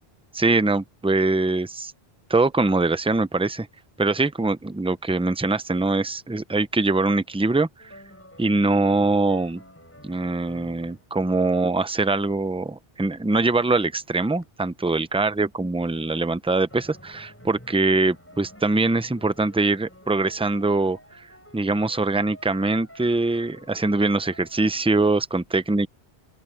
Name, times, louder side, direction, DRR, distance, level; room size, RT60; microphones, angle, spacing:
voice 1, 0.3-1.9 2.3-3.7 4.0-8.0 8.4-9.6 10.0-21.0 21.5-25.9, right 3 dB, 5° right, 0.5 m, -23 dB
sound 1, 7.8-11.1 12.4-12.8 13.9-14.5 14.8-14.9 16.7-25.2, equal, 10° left, 7.6 m, -49 dB
open air
omnidirectional pair, 1.0 m